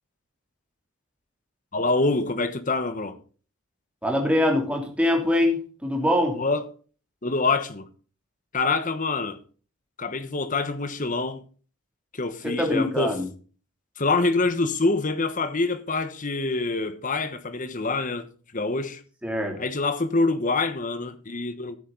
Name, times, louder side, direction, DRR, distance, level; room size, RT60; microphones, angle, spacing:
voice 1, 1.7-3.2 6.3-6.7 7.2-7.9 8.5-9.4 10.0-11.4 12.1-13.2 14.0-18.3 18.5-19.0 19.6-21.8, left 3 dB, 35° left, 1.2 m, -26 dB
voice 2, 4.0-6.4 12.6-13.3 19.2-19.5, left 1 dB, 5° right, 2.9 m, -23 dB
13.5 x 9.3 x 3.9 m
head